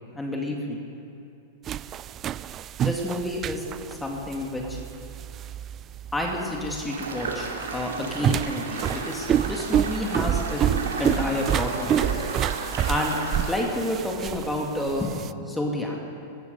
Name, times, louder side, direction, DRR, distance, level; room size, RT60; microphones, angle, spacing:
voice 1, 0.1-0.8 2.8-4.8 6.1-10.6 11.0-12.2 12.9-13.2 13.5-15.1 15.4-16.0, left 1 dB, 10° left, 0 dB, 2.1 m, -29 dB
sound 1, 1.7-15.3, right 10 dB, 30° right, 0.3 m, -28 dB
sound 2, 6.9-13.5, right 3 dB, 80° right, 2.4 m, -33 dB
14.5 x 13.0 x 5.4 m, 2.8 s
hypercardioid pair, 105°, 0 cm